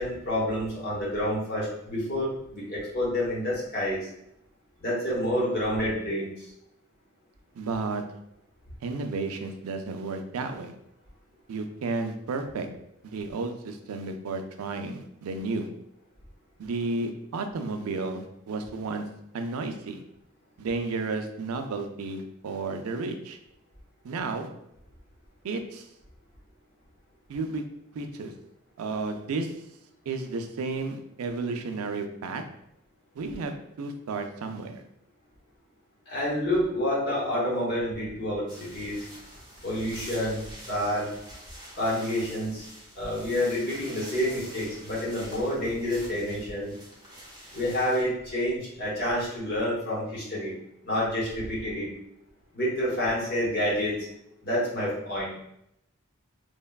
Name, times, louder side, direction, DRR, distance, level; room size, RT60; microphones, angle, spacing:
voice 1, 0.0-4.1 4.8-6.5 36.1-39.0 39.6-41.1 41.7-42.7 42.9-46.7 47.5-50.6 50.8-51.9 52.5-53.9 54.4-55.3, left 1 dB, 50° left, -5 dB, 0.9 m, -28 dB
voice 2, 7.6-8.0 8.8-10.7 11.5-12.7 13.0-15.7 16.6-19.1 19.3-20.0 20.6-23.4 24.0-24.5 25.4-25.9 27.3-27.6 27.9-28.3 28.8-29.5 30.1-32.4 33.2-34.8, right 3 dB, 85° right, 6 dB, 0.4 m, -32 dB
sound 1, 38.5-48.0, equal, 20° right, 0.7 m, -46 dB
3.3 x 2.2 x 2.2 m, 0.78 s
head